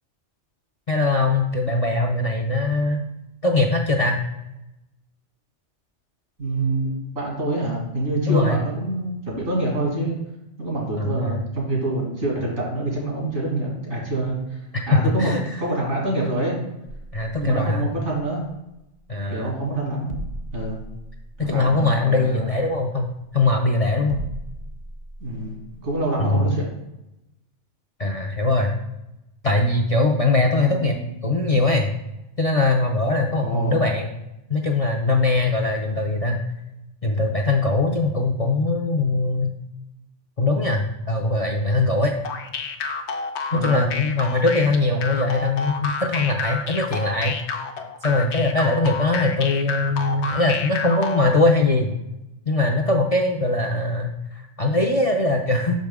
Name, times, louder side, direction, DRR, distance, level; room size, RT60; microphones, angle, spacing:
voice 1, 0.9-3.0 3.4-4.2 8.3-8.6 11.0-11.4 14.7-15.6 17.1-17.9 19.1-19.5 21.4-24.2 26.2-26.5 28.0-28.7 29.4-31.0 31.2-31.9 32.4-34.1 34.5-36.4 37.0-39.6 40.4-42.2 43.5-47.4 48.0-51.9 52.5-55.7, left 2 dB, 50° left, 2 dB, 0.4 m, -21 dB
voice 2, 6.4-10.2 10.6-14.6 14.9-15.3 15.6-16.6 17.4-18.4 19.3-20.1 20.5-20.8 21.4-22.4 25.2-26.7 30.6-31.1 33.3-33.8 43.5-43.9, right 1 dB, 80° right, -2 dB, 2.5 m, -26 dB
sound 1, 18.7-26.5, right 1 dB, 50° right, 0.8 m, -39 dB
sound 2, 42.2-51.4, left 4 dB, 70° left, 0.9 m, -30 dB
6.1 x 5.3 x 3.5 m, 0.91 s
omnidirectional pair, 1.2 m